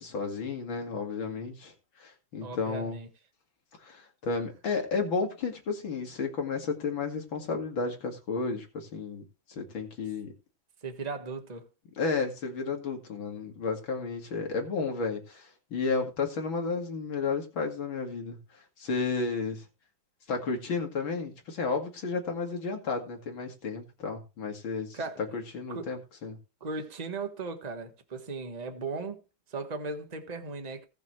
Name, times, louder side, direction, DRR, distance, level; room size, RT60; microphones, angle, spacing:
voice 1, 0.0-1.7 2.0-3.0 3.8-9.2 9.6-10.3 12.0-18.4 18.8-19.6 20.3-25.0 25.3-26.4, left 4 dB, 75° left, 3.0 m, -32 dB
voice 2, 2.4-3.1 10.8-11.6 24.9-25.4 25.7-25.9 26.6-29.2 29.5-30.9, right 3 dB, 20° right, 1.4 m, -37 dB
18.5 x 6.4 x 3.2 m
omnidirectional pair, 2.2 m